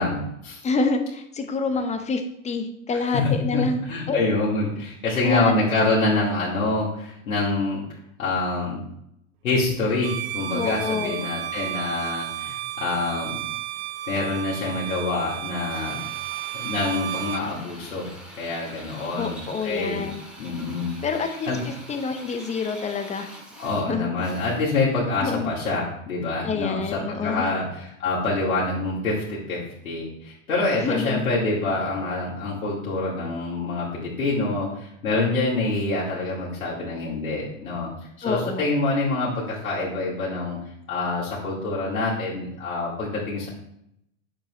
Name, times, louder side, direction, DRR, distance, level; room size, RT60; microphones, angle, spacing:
voice 1, 0.0-0.6 3.1-3.6 3.9-7.8 8.2-8.8 9.4-13.5 14.1-16.0 16.5-18.1 18.4-19.4 19.6-20.1 20.4-21.0 21.5-21.6 23.6-27.7 28.0-29.6 29.8-37.9 38.2-40.6 40.9-43.5, left 3 dB, 75° left, -7 dB, 2.7 m, -26 dB
voice 2, 0.6-4.5 5.2-5.5 10.5-11.3 19.1-20.2 21.0-23.3 23.9-24.1 25.2-25.5 26.4-27.5 30.8-31.3 38.2-38.7, left 4 dB, 15° left, 7 dB, 1.0 m, -27 dB
Bowed string instrument, 10.0-17.5, right 13 dB, 45° right, 0.7 m, -33 dB
Drill, 15.7-24.9, right 1 dB, ahead, 2.4 m, -44 dB
9.1 x 6.8 x 3.2 m, 0.75 s
hypercardioid pair, 105°, 42 cm